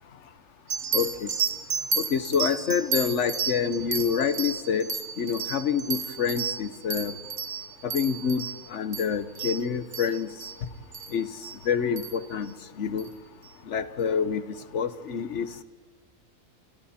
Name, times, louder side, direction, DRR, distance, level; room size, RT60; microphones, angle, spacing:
sound 1, 0.7-10.6 10.9-11.1 11.4-11.5 12.0-12.2 13.0-13.1, right 6 dB, 70° right, 1.8 m, -32 dB
voice 1, 0.9-1.3 1.9-4.9 5.2-7.1 7.8-10.3 11.1-11.3 11.7-13.1 13.7-14.4 14.7-15.6, left 7 dB, 55° left, 13 dB, 1.4 m, -27 dB
30.0 x 26.5 x 4.4 m, 1.5 s
omnidirectional pair, 1.5 m